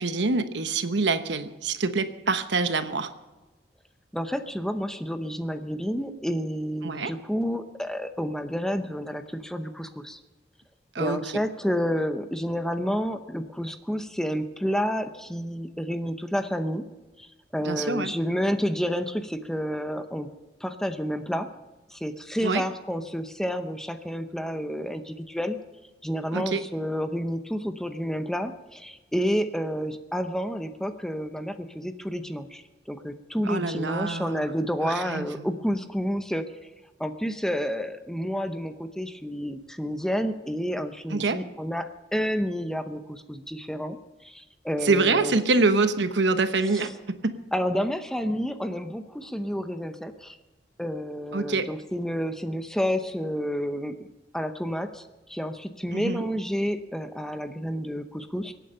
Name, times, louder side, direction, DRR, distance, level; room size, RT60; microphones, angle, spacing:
voice 1, 0.0-3.1 6.8-7.1 10.9-11.3 17.6-18.1 22.4-22.6 26.3-26.6 33.4-34.5 34.8-35.5 41.1-41.4 44.8-47.4 51.3-51.7 55.9-56.3, right 3 dB, 75° right, 10 dB, 1.0 m, -25 dB
voice 2, 4.1-10.2 11.0-16.8 17.2-20.3 20.6-21.5 21.9-25.6 26.0-36.7 37.0-44.0 44.2-45.3 46.7-46.8 47.5-50.4 50.8-54.1 54.3-58.5, equal, 5° left, 8 dB, 0.7 m, -30 dB
23.5 x 9.1 x 5.6 m, 1.1 s
head